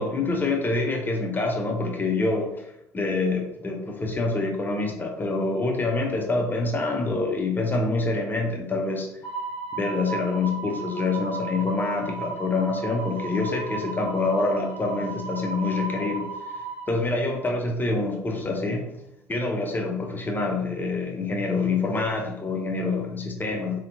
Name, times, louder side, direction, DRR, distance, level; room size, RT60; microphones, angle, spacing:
voice 1, 0.0-9.1 9.7-16.3 16.9-18.8 19.3-23.8, left 3 dB, 20° left, 2 dB, 0.5 m, -26 dB
sound 1, 9.2-16.9, right 4 dB, 55° left, 1.1 m, -35 dB
2.7 x 2.1 x 2.6 m, 0.84 s
figure-of-eight pair, 60°, 9 cm